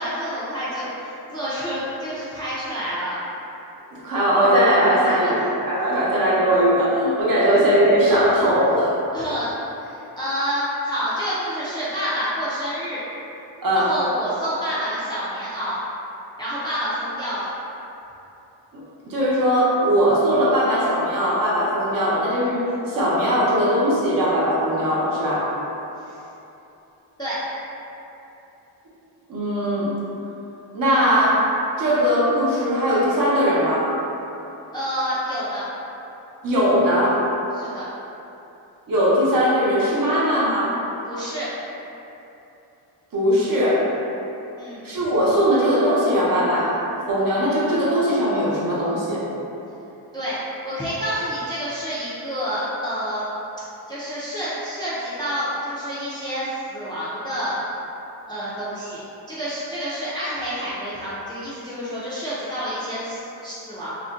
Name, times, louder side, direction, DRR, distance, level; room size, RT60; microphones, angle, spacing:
voice 1, 0.0-3.2 5.2-5.3 7.4-7.5 9.1-9.5 9.8-13.0 13.7-15.8 16.4-17.5 26.0-26.2 27.2-27.4 34.7-35.6 37.5-37.9 41.1-41.5 44.6-44.8 50.1-53.2 53.9-57.6 58.3-59.0 59.3-64.0, equal, 10° left, -10 dB, 0.4 m, -28 dB
voice 2, 3.9-8.9 13.6-13.9 18.7-25.5 29.3-29.9 30.7-33.9 36.4-37.3 38.9-40.8 43.1-43.9 44.8-49.2, equal, 50° right, -7 dB, 0.8 m, -20 dB
2.5 x 2.1 x 3.6 m, 2.9 s
cardioid pair, 120°, 45 cm